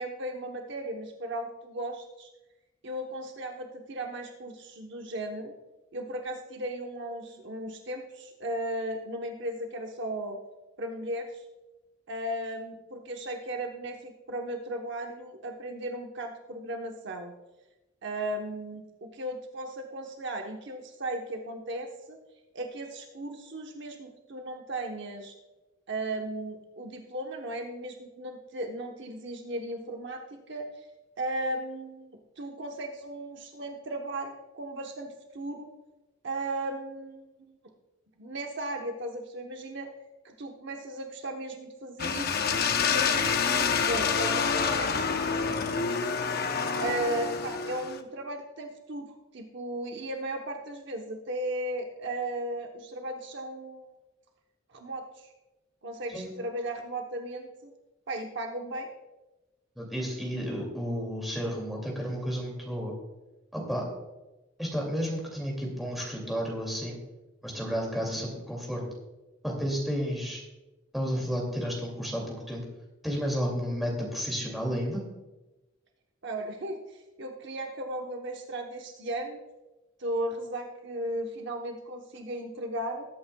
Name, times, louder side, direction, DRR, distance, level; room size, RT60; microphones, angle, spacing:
voice 1, 0.0-2.3 2.8-5.5 5.9-10.4 10.8-11.4 12.1-17.3 18.0-22.2 22.5-25.3 25.9-30.7 31.2-32.1 32.4-35.7 36.2-37.6 38.2-39.9 40.2-42.5 42.8-44.9 46.8-49.1 49.3-53.9 54.7-55.3 55.8-57.7 58.1-58.9 76.2-76.8 77.2-79.4 80.0-83.1, right 1 dB, 55° right, 3 dB, 0.9 m, -36 dB
sound 1, 42.0-48.0, left 6 dB, 50° left, 0.7 m, -27 dB
voice 2, 59.8-62.9 63.5-63.9 64.6-67.0 67.4-68.8 69.4-70.4 70.9-72.6 73.0-75.0, equal, ahead, -2 dB, 2.3 m, -32 dB
20.0 x 8.6 x 2.3 m, 1.1 s
head